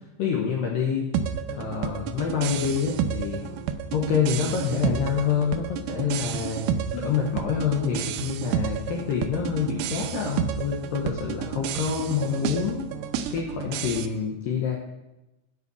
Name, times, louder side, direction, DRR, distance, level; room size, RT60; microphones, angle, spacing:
voice 1, 0.2-1.1 1.5-3.4 3.9-12.9 13.3-14.8, left 7 dB, 85° left, -1 dB, 2.0 m, -27 dB
sound 1, 1.1-14.1, right 8 dB, 90° right, 2.4 m, -31 dB
9.5 x 5.3 x 8.0 m, 0.99 s
omnidirectional pair, 5.4 m